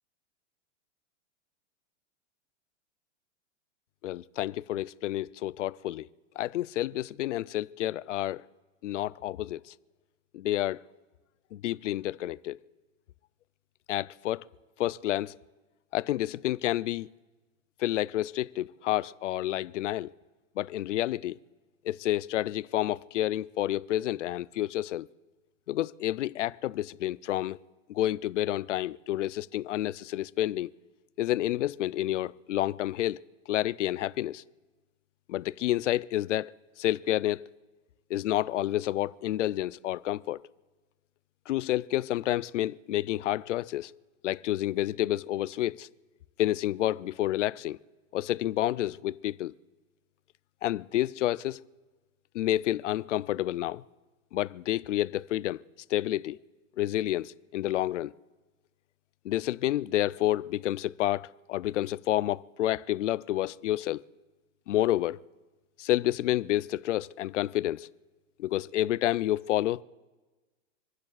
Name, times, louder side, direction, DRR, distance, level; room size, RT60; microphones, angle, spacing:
voice 1, 4.0-6.1 6.4-8.4 8.8-9.7 10.3-10.8 11.5-12.6 13.9-14.4 14.8-15.4 15.9-17.1 17.8-20.1 20.6-21.4 21.8-25.1 25.7-27.6 27.9-30.7 31.2-33.2 33.5-34.4 35.3-36.5 36.8-37.4 38.1-40.4 41.5-43.9 44.2-45.9 46.4-47.8 48.1-49.5 50.6-51.6 52.3-53.8 54.3-55.6 55.9-56.4 56.8-58.1 59.2-64.0 64.7-65.2 65.8-67.9 68.4-69.8, left 14 dB, 75° left, 0.5 m, -29 dB
28.0 x 10.5 x 2.4 m
supercardioid pair, 175°, 38 cm